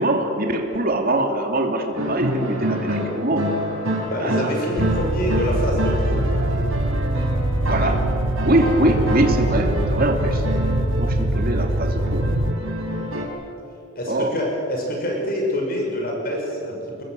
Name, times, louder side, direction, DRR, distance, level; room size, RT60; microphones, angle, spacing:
voice 1, 0.0-3.5 4.2-4.5 7.6-8.0 8.4-10.4 11.0-12.3 14.1-14.4, right 1 dB, 45° right, 3 dB, 2.9 m, -23 dB
sound 1, 1.9-13.3, equal, 85° right, 5.9 m, -28 dB
voice 2, 4.0-6.3 14.0-17.0, left 1 dB, 45° left, 0 dB, 6.0 m, -26 dB
sound 2, 4.8-12.5, right 1 dB, 65° right, 1.2 m, -23 dB
25.5 x 21.0 x 7.8 m, 2.8 s
head